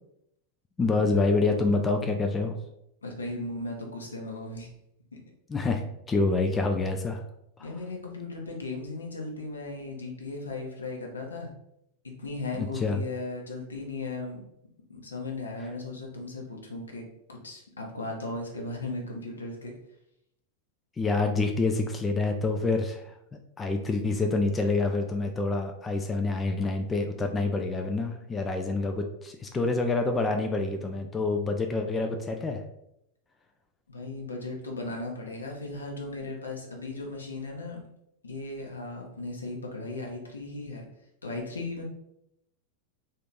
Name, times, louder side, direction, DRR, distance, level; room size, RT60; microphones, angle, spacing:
voice 1, 0.8-2.6 5.5-5.8 6.1-7.2 7.6-7.7 12.5-13.0 21.0-23.1 23.6-32.6, left 3 dB, 15° left, 4 dB, 0.4 m, -27 dB
voice 2, 3.0-4.7 7.6-11.5 12.0-14.4 14.9-19.7 33.9-37.8 38.2-40.9 41.2-41.8, left 2 dB, 75° left, 1 dB, 0.8 m, -37 dB
3.7 x 2.8 x 3.5 m, 0.79 s
figure-of-eight pair, 90°, 0 cm